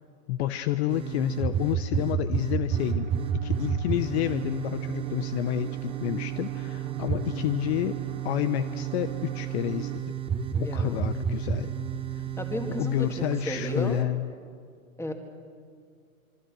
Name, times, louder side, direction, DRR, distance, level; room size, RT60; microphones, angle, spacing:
voice 1, 0.3-8.0 8.2-10.1 10.6-11.7 12.8-14.3, left 14 dB, 50° left, 11 dB, 0.9 m, -29 dB
sound 1, 0.9-14.0, right 8 dB, 15° right, 0.9 m, -31 dB
sound 2, 2.7-10.0, right 21 dB, 40° right, 0.6 m, -42 dB
voice 2, 10.5-11.0 12.4-14.0 15.0-15.1, left 1 dB, 5° left, 4 dB, 2.1 m, -34 dB
26.0 x 23.0 x 6.3 m, 2.2 s
hypercardioid pair, 120°, 42 cm